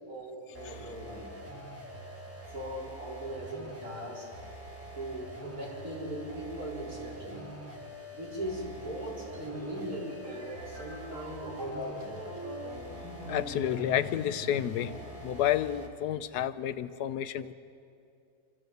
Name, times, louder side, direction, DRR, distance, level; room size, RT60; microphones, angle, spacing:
voice 1, 0.1-1.3 2.5-4.2 4.9-7.5 8.1-12.3, right 1 dB, 65° right, -5 dB, 5.0 m, -39 dB
sound 1, 0.5-16.0, right 1 dB, 10° right, 1.5 m, -46 dB
sound 2, 9.3-16.0, left 2 dB, 85° right, 4.5 m, -44 dB
voice 2, 13.3-14.9 15.2-17.5, left 11 dB, 80° left, 13 dB, 1.2 m, -30 dB
26.5 x 13.0 x 8.0 m, 2.5 s
omnidirectional pair, 1.7 m